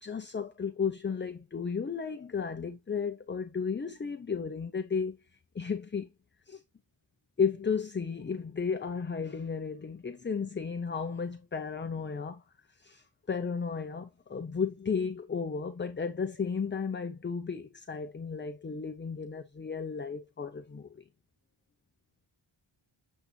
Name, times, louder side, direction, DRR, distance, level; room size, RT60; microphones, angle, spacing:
voice 1, 0.0-5.2 5.5-6.1 6.5-6.6 7.4-12.4 12.8-21.0, left 6 dB, 25° left, 0.5 m, -34 dB
8.2 x 4.1 x 3.1 m
wide cardioid pair, 100°, 49 cm